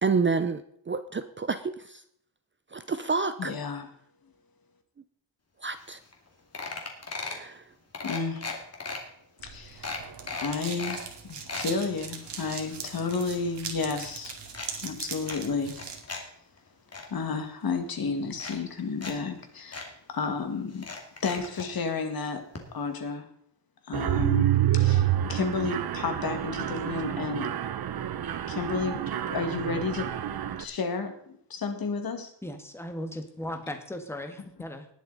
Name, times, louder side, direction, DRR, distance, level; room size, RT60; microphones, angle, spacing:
voice 1, 0.0-2.0 2.7-3.5 5.6-6.0 7.2-7.6, right 4 dB, 25° right, 10 dB, 0.6 m, -29 dB
voice 2, 3.4-3.9 8.0-8.5 9.4-9.9 10.4-14.4 14.8-15.8 17.1-19.8 20.1-20.9 21.2-22.5 22.7-23.3 23.9-27.5 28.5-30.1 30.6-31.2 31.5-32.3, left 4 dB, 55° left, 6 dB, 2.0 m, -32 dB
sound 1, 5.8-5.9 6.1-6.3 6.5-7.5 7.9-9.0 9.4-9.5 9.8-11.0 11.3-11.7 12.2-13.7 14.0-14.7 15.2-16.2 16.6-17.1 17.9-18.0 18.3-19.1 19.4-19.5 19.7-19.9 20.7-21.7 22.5-22.6 22.9-23.0, left 4 dB, 35° left, 2.5 m, -37 dB
sound 2, 9.4-16.0, right 6 dB, 75° right, 2.4 m, -41 dB
Mechanisms, 23.9-30.6, right 12 dB, 55° right, 0.9 m, -28 dB
voice 3, 32.4-34.9, left 1 dB, 5° left, 5 dB, 1.6 m, -37 dB
19.5 x 7.6 x 4.0 m, 0.67 s
wide cardioid pair, 140°, 43 cm